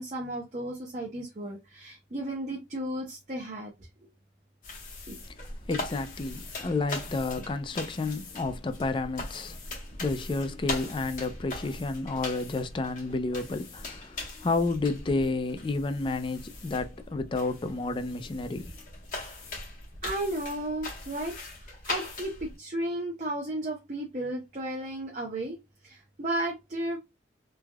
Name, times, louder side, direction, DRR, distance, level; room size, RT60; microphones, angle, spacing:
voice 1, 0.0-3.7 5.1-5.2 20.0-21.3 21.6-25.6 25.8-27.0, right 1 dB, 40° right, 0.6 m, -34 dB
sound 1, 4.6-22.6, left 2 dB, 50° left, 1.0 m, -40 dB
voice 2, 5.7-9.6 10.0-18.7, left 3 dB, 30° left, 0.3 m, -31 dB
3.3 x 2.2 x 2.2 m
head